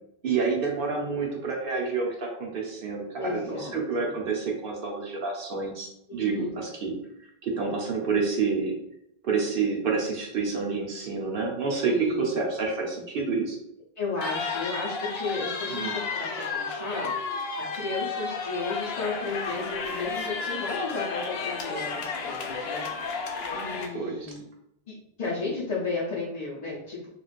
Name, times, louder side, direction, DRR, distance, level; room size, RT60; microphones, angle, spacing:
voice 1, 0.2-6.9 7.4-8.8 9.2-13.6 15.7-16.0 23.9-24.3, right 4 dB, 60° right, 0 dB, 1.0 m, -28 dB
voice 2, 3.2-4.1 6.1-6.6 11.8-12.3 14.0-17.1 17.6-24.4 24.9-27.1, left 3 dB, 45° left, -8 dB, 0.8 m, -34 dB
sound 1, 14.2-23.9, left 4 dB, 75° left, 0.8 m, -32 dB
3.4 x 3.1 x 2.4 m, 0.79 s
omnidirectional pair, 1.1 m